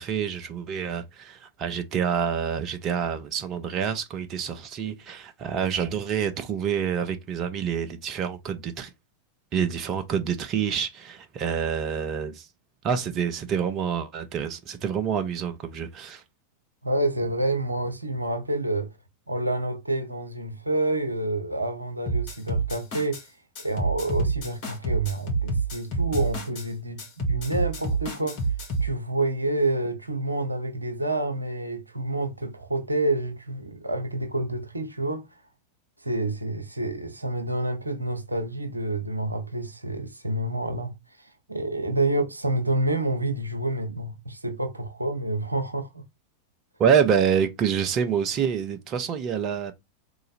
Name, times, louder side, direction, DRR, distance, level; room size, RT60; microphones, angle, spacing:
voice 1, 0.0-8.9 9.5-12.5 12.8-16.2 46.8-49.7, right 7 dB, 35° right, 0.8 m, -27 dB
voice 2, 16.8-18.9 19.3-23.2 23.6-28.4 28.8-35.3 36.0-40.9 41.2-46.0, right 2 dB, 85° right, 0.7 m, -28 dB
sound 1, 22.1-23.2 23.6-26.7 27.0-28.9, right 3 dB, 45° left, 2.0 m, -28 dB
3.8 x 3.0 x 4.1 m
figure-of-eight pair, 90°, 0 cm